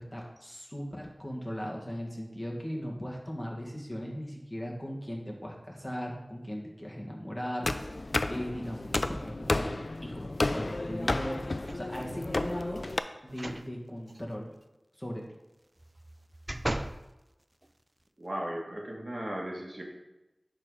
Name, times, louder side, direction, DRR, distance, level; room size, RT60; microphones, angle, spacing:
voice 1, 0.0-10.2 10.5-12.9 13.2-14.5 15.0-15.2, equal, 20° left, -2 dB, 1.8 m, -38 dB
sound 1, 7.6-13.0, left 2 dB, 65° left, 0.4 m, -32 dB
sound 2, 11.6-12.2 13.3-13.7 14.1-14.2 15.8-17.0 17.6-17.7, right 1 dB, 30° right, 0.5 m, -37 dB
voice 2, 18.2-19.8, right 1 dB, 55° right, -1 dB, 1.7 m, -36 dB
11.0 x 3.9 x 4.9 m, 0.99 s
wide cardioid pair, 40°, 0 cm